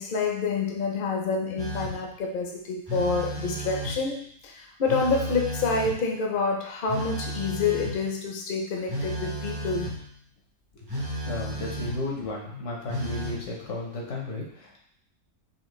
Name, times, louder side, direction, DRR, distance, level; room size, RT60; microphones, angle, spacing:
voice 1, 0.0-9.9, left 4 dB, 50° left, 0 dB, 0.7 m, -28 dB
Telephone, 1.6-2.1 2.9-4.1 4.9-6.1 6.9-8.1 8.9-10.0 10.9-12.1 12.9-13.5, right 1 dB, 25° right, 0.7 m, -33 dB
voice 2, 11.2-14.8, left 2 dB, 75° left, -2 dB, 1.3 m, -34 dB
4.2 x 2.8 x 3.1 m, 0.65 s
omnidirectional pair, 1.3 m